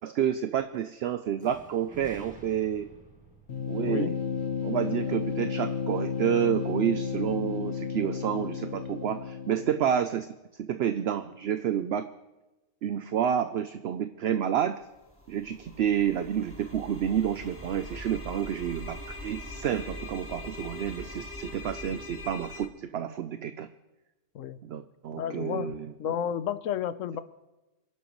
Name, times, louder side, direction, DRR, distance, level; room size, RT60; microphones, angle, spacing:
voice 1, 0.0-2.9 3.7-4.1 4.6-10.3 10.6-12.1 12.8-14.8 15.3-23.7 24.6-25.9, right 9 dB, 60° right, 10 dB, 0.8 m, -29 dB
sound 1, 1.4-5.3, right 2 dB, 5° right, 1.6 m, -51 dB
sound 2, 3.5-10.1, left 6 dB, 60° left, 1.3 m, -32 dB
sound 3, 14.9-22.7, left 1 dB, 10° left, 1.2 m, -42 dB
voice 2, 25.2-25.7 26.0-27.2, left 9 dB, 85° left, 14 dB, 1.1 m, -31 dB
28.5 x 11.0 x 3.1 m, 1.1 s
omnidirectional pair, 1.3 m